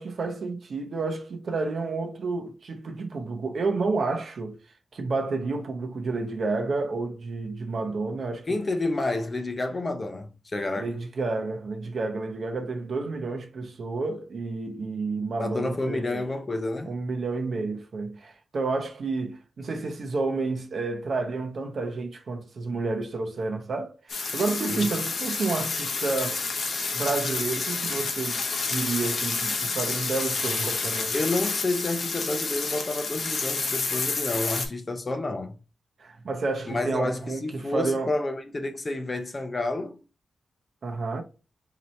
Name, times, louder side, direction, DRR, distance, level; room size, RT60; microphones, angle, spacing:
voice 1, 0.0-4.6 4.9-8.5 10.7-16.2 16.8-26.4 26.9-31.1 36.0-38.1 40.8-41.2, right 3 dB, 50° right, 0.7 m, -30 dB
voice 2, 8.5-10.9 15.4-16.9 24.7-24.9 31.1-35.6 36.7-40.0, left 2 dB, 25° left, 0.5 m, -29 dB
sound 1, 24.1-34.7, left 4 dB, 55° left, 0.8 m, -29 dB
4.0 x 2.8 x 3.1 m
wide cardioid pair, 180°, 0 cm